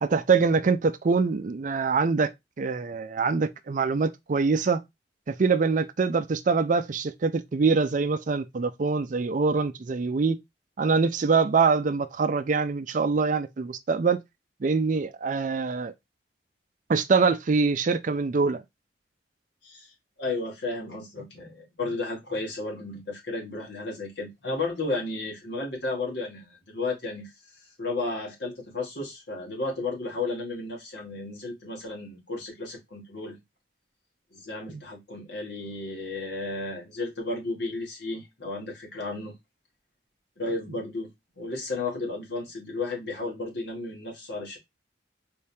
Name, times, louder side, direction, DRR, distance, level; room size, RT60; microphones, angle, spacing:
voice 1, 0.0-2.3 2.6-4.8 5.3-10.4 10.8-14.2 14.6-15.9 16.9-18.6, right 4 dB, 45° right, 0.4 m, -24 dB
voice 2, 19.6-33.4 34.3-39.4 40.4-44.6, left 3 dB, 70° left, 2.1 m, -33 dB
4.2 x 3.5 x 2.7 m
head